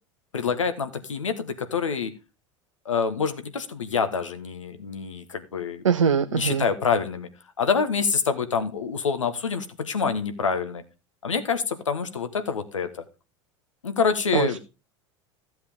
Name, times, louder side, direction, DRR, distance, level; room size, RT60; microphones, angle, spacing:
voice 1, 0.3-2.1 2.8-5.8 6.2-7.3 7.6-10.8 11.2-13.0 13.8-14.6, left 6 dB, 85° left, 9 dB, 1.3 m, -26 dB
voice 2, 5.8-6.6 14.3-14.6, right 7 dB, 85° right, 9 dB, 0.6 m, -22 dB
14.5 x 7.8 x 3.6 m, 0.30 s
hypercardioid pair, 80°, 16 cm